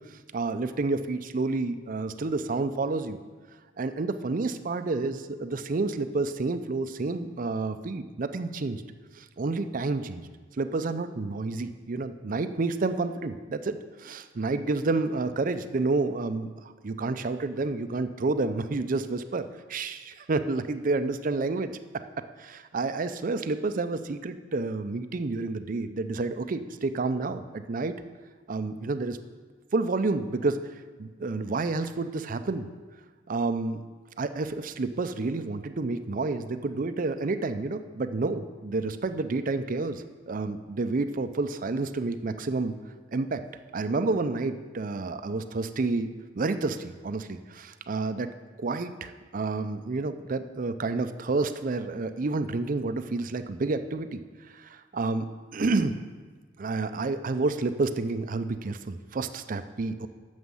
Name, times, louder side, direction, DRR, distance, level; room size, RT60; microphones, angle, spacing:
voice 1, 0.1-3.2 3.8-8.8 9.2-10.3 10.6-21.7 22.4-27.9 28.5-29.2 29.7-30.6 31.0-32.7 33.3-33.8 34.2-42.7 43.1-43.4 43.7-46.1 46.4-48.3 48.6-54.2 54.5-55.3 55.5-56.0 56.6-60.1, right 3 dB, 50° right, 10 dB, 0.5 m, -29 dB
9.6 x 7.2 x 5.6 m, 1.5 s
head